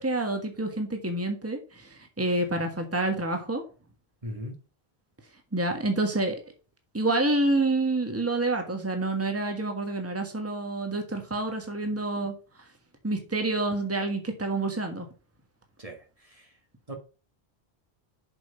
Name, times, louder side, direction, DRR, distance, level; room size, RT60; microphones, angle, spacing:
voice 1, 0.0-3.6 5.5-6.4 6.9-12.3 13.0-15.1, right 2 dB, 15° right, 4 dB, 1.5 m, -28 dB
voice 2, 4.2-4.6 15.8-16.5 16.9-17.0, equal, 35° right, 2 dB, 1.7 m, -39 dB
7.4 x 5.4 x 5.6 m, 0.34 s
omnidirectional pair, 1.0 m